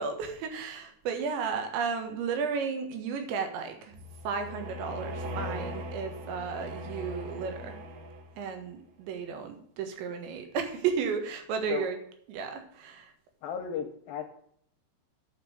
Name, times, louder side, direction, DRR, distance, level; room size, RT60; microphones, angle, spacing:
voice 1, 0.0-4.0 4.2-7.8 8.4-12.0 12.3-13.1, right 6 dB, 85° right, 6 dB, 3.7 m, -33 dB
sound 1, 3.9-8.6, equal, 65° right, 3.0 m, -39 dB
voice 2, 13.4-14.2, left 8 dB, 75° left, 5 dB, 2.2 m, -34 dB
9.3 x 5.4 x 7.7 m, 0.65 s
omnidirectional pair, 5.1 m